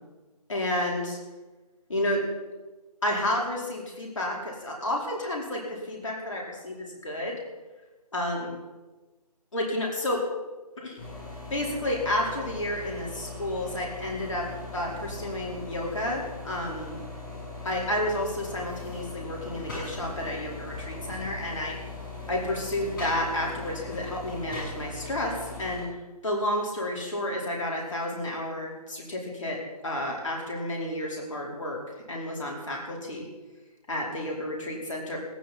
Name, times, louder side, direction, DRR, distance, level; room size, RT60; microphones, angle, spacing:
voice 1, 0.5-1.2 1.9-2.2 3.0-7.4 8.1-8.5 9.5-10.2 10.8-11.0 11.5-17.0 17.6-21.8 22.3-25.9 26.2-29.6 29.8-31.8 32.1-33.3 33.9-35.2, left 1 dB, 50° left, -2 dB, 4.7 m, -31 dB
sound 1, 11.0-25.8, left 3 dB, 30° left, 6.7 m, -39 dB
18.5 x 13.0 x 4.4 m, 1.2 s
figure-of-eight pair, 155°, 20 cm